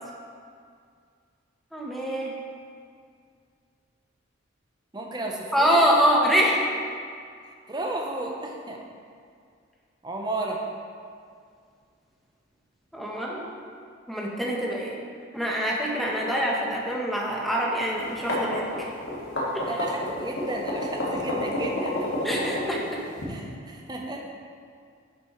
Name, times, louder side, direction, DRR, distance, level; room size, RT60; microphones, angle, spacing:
voice 1, 1.7-2.3 5.5-6.6 12.9-13.5 14.1-15.0 15.3-18.9 19.5-19.6 22.2-22.8, equal, ahead, -3 dB, 1.1 m, -25 dB
voice 2, 4.9-5.8 7.7-8.8 10.0-10.6 19.7-21.9 23.3-24.3, right 2 dB, 20° right, 0 dB, 0.9 m, -33 dB
sound 1, 18.0-23.2, left 1 dB, 65° left, 2.0 m, -29 dB
10.5 x 6.8 x 3.2 m, 2.2 s
head